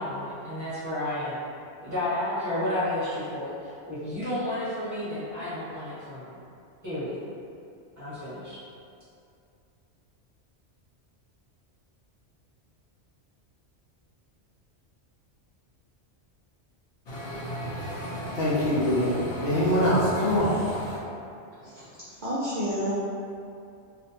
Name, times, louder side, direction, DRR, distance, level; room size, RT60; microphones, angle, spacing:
voice 1, 0.0-1.4 1.8-6.4 6.8-7.2 8.0-8.6, left 1 dB, 15° right, -14 dB, 1.0 m, -31 dB
voice 2, 17.1-21.0, equal, 65° left, -9 dB, 0.7 m, -25 dB
voice 3, 22.2-23.0, equal, 55° right, -11 dB, 0.6 m, -30 dB
2.4 x 2.1 x 2.8 m, 2.5 s
omnidirectional pair, 1.2 m